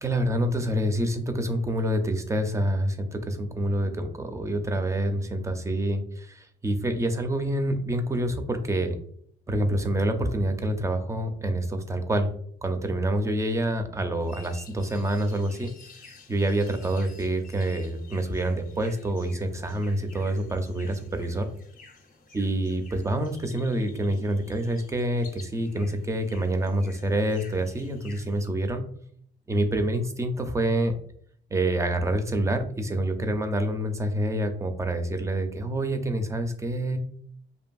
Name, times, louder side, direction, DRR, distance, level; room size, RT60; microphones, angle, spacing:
voice 1, 0.0-9.0 9.5-12.3 12.6-16.0 16.3-21.5 22.3-28.9 29.5-30.9 31.5-37.0, right 1 dB, 15° right, 7 dB, 0.4 m, -27 dB
sound 1, 14.2-28.5, left 4 dB, 45° left, 0.5 m, -52 dB
2.6 x 2.5 x 2.3 m, 0.62 s
cardioid pair, 90°, 20 cm